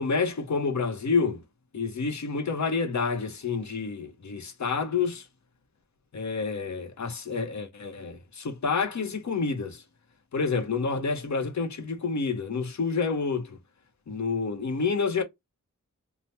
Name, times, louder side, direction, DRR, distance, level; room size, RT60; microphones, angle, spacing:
voice 1, 0.0-1.4 1.7-5.2 6.1-9.8 10.3-13.6 14.1-15.2, left 4 dB, 60° left, 0.7 m, -28 dB
3.2 x 2.0 x 2.7 m
wide cardioid pair, 70°, 32 cm